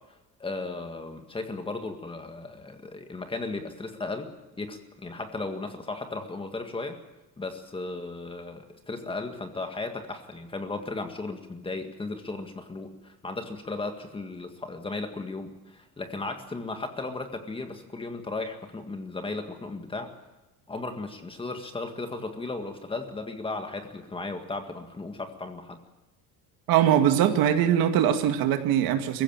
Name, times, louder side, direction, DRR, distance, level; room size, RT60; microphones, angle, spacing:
voice 1, 0.4-4.3 4.6-7.0 7.4-20.1 20.7-25.8, left 3 dB, 15° left, 6 dB, 1.9 m, -35 dB
voice 2, 26.7-29.2, right 10 dB, 70° right, 7 dB, 2.1 m, -22 dB
23.0 x 15.5 x 8.8 m, 1.0 s
cardioid pair, 155°, 37 cm